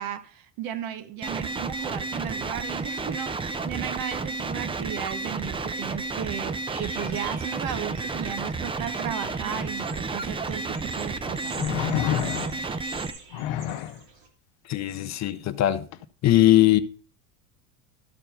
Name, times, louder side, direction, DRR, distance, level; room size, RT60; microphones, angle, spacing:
voice 1, 0.0-11.6, right 10 dB, 50° right, 1.0 m, -35 dB
sound 1, 1.2-13.1, right 3 dB, 10° right, 0.5 m, -31 dB
sound 2, 6.7-14.3, right 4 dB, 70° right, 2.8 m, -44 dB
sound 3, 10.2-10.3 11.6-12.8 13.3-14.0 15.9-16.0, left 11 dB, 65° left, 0.8 m, -28 dB
voice 2, 14.6-15.9 16.2-16.8, left 14 dB, 35° left, 0.7 m, -20 dB
12.5 x 4.4 x 5.4 m
supercardioid pair, 95°, 46 cm